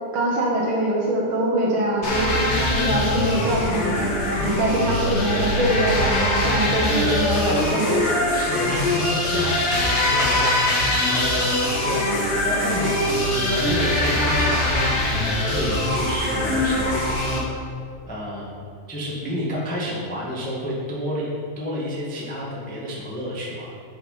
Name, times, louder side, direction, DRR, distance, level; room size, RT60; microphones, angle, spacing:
voice 1, 0.1-4.1 4.4-8.1, right 1 dB, 55° right, -3 dB, 1.6 m, -23 dB
sound 1, 2.0-17.4, left 1 dB, 35° left, 1.1 m, -22 dB
voice 2, 8.3-16.9 18.1-21.3 21.6-23.7, left 1 dB, 10° left, -6 dB, 0.3 m, -30 dB
8.0 x 5.8 x 5.5 m, 2.3 s
omnidirectional pair, 3.4 m